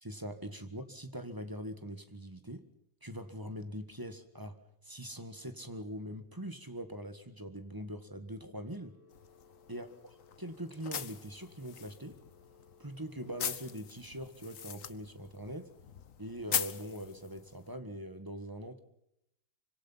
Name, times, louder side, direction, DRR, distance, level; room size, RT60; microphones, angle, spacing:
voice 1, 0.0-2.7 3.0-9.0 9.7-12.2 12.8-15.7 16.2-18.8, equal, 10° right, 8 dB, 1.6 m, -42 dB
Telephone, 8.8-13.8, left 4 dB, 85° left, 7.2 m, -63 dB
sound 1, 9.1-17.7, left 8 dB, 50° left, 1.3 m, -42 dB
25.5 x 25.5 x 5.7 m, 0.81 s
omnidirectional pair, 2.1 m